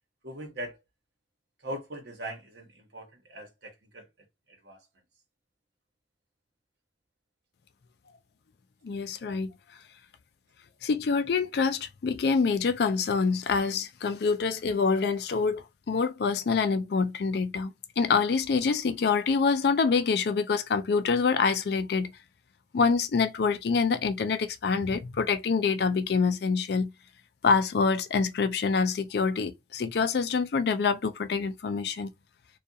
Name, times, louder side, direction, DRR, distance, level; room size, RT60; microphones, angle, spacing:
voice 1, 0.2-0.8 1.6-4.9, right 1 dB, 70° right, 1.0 m, -41 dB
voice 2, 8.8-9.5 10.8-22.1 22.7-26.9 27.4-32.1, left 5 dB, 60° left, 0.4 m, -26 dB
2.3 x 2.3 x 2.7 m
head